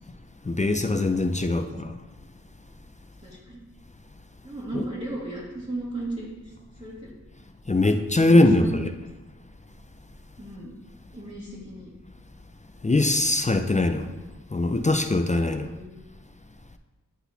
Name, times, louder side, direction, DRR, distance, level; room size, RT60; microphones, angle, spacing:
voice 1, 0.4-2.0 4.7-4.9 7.7-8.9 12.8-14.1 14.5-15.7, left 2 dB, 25° left, 0.3 m, -22 dB
voice 2, 3.2-3.6 4.4-7.1 7.8-8.7 10.4-10.7 11.1-11.9 13.7-14.3 15.3-16.0, right 1 dB, 20° right, 1.5 m, -37 dB
9.7 x 4.0 x 2.8 m
wide cardioid pair, 45°, 33 cm